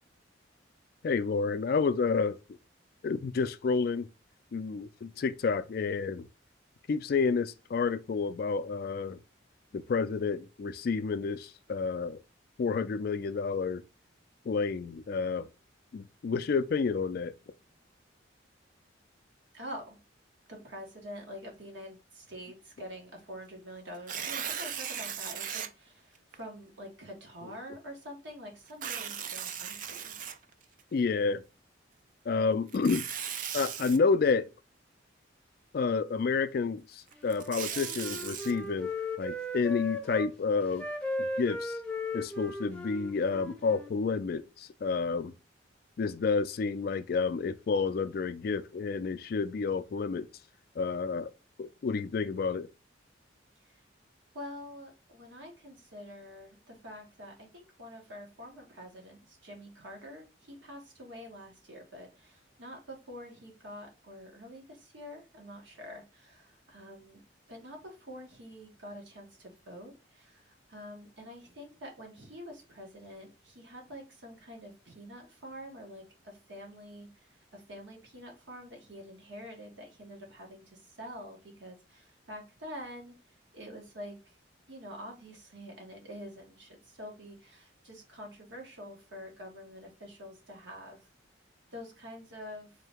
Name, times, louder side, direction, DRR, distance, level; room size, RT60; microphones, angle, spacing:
voice 1, 1.0-2.4 3.0-4.1 4.5-6.3 6.9-9.2 9.7-12.2 12.6-13.8 14.5-15.5 15.9-17.3 30.9-31.4 32.3-33.0 33.5-34.5 35.7-38.9 39.2-40.9 41.2-41.8 42.1-45.3 46.0-50.3 50.8-51.3 51.6-52.7, left 4 dB, 50° left, 0.3 m, -30 dB
voice 2, 19.5-20.0 20.5-30.2 53.6-53.8 54.3-67.2 67.5-83.1 83.5-84.3 84.7-91.1 91.7-92.7, equal, 75° right, 1.7 m, -46 dB
Tearing, 23.9-25.7 26.3-26.4 28.7-30.8 32.7-34.0 37.1-38.5, right 8 dB, 45° right, 0.4 m, -37 dB
Wind instrument woodwind instrument, 37.2-40.3 40.8-43.9, left 2 dB, 5° left, 0.6 m, -37 dB
3.7 x 2.7 x 3.4 m
head